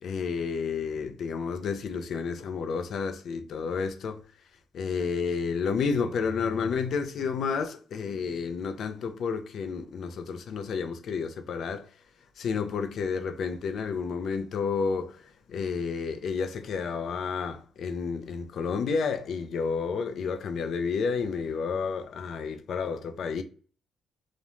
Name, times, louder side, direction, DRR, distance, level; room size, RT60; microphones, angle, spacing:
voice 1, 0.0-4.2 4.7-11.9 12.4-23.4, left 5 dB, 65° left, 0.4 m, -31 dB
2.4 x 2.1 x 2.9 m
cardioid pair, 90°, 0 cm